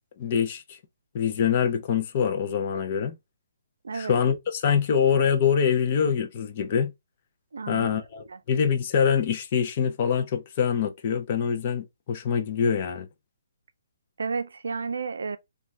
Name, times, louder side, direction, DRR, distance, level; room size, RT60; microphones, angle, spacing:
voice 1, 0.2-0.8 1.1-3.1 3.9-6.9 7.7-13.1, left 7 dB, 30° left, 0.4 m, -24 dB
voice 2, 3.8-4.2 7.5-7.9 8.3-8.4 14.2-15.4, right 4 dB, 85° right, 0.4 m, -31 dB
2.6 x 2.2 x 3.2 m
hypercardioid pair, 175°, 0 cm